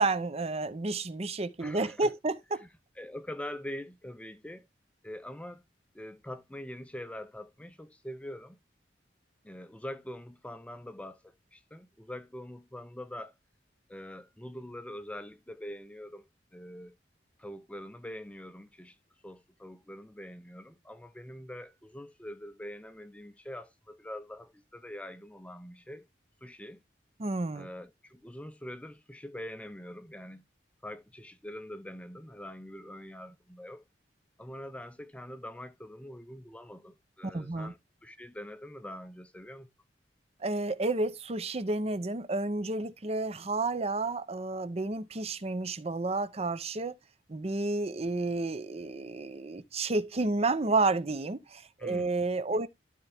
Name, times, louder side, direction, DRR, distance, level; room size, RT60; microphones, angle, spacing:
voice 1, 0.0-2.6 27.2-27.7 37.2-37.7 40.4-46.9 47.3-52.7, right 3 dB, 35° right, 0.7 m, -31 dB
voice 2, 1.6-2.1 2.6-2.7 3.0-4.7 5.0-5.6 5.9-8.6 9.4-13.3 13.9-16.3 16.5-16.9 17.4-19.0 19.2-26.1 26.4-26.8 27.5-30.4 30.8-33.8 34.4-39.7 51.8-52.2 52.5-52.6, left 1 dB, 5° left, 0.5 m, -44 dB
12.5 x 4.4 x 3.5 m
head